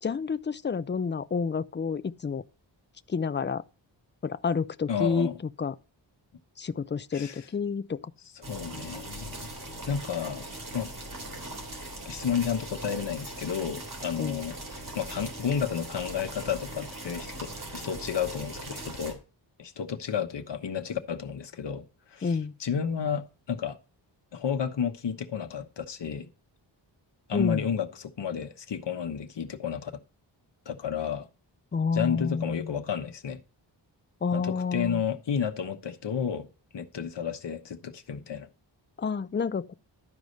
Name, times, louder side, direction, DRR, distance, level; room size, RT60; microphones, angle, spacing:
voice 1, 0.0-2.4 3.1-3.6 4.2-5.3 5.6-5.8 6.6-8.1 14.2-14.4 22.2-22.6 27.3-27.6 31.7-32.8 34.2-35.0 39.0-39.7, left 5 dB, 25° left, 0.5 m, -29 dB
voice 2, 4.9-5.3 7.1-7.5 8.3-9.5 9.8-10.5 10.7-10.9 12.0-14.6 14.9-19.2 19.6-23.8 24.3-26.3 27.3-29.9 30.7-31.3 31.9-33.4 34.3-36.5 36.7-38.5, left 7 dB, 65° left, 1.2 m, -32 dB
sound 1, 8.4-19.1, right 1 dB, 45° right, 3.5 m, -40 dB
12.0 x 4.8 x 5.3 m
wide cardioid pair, 100°, 45 cm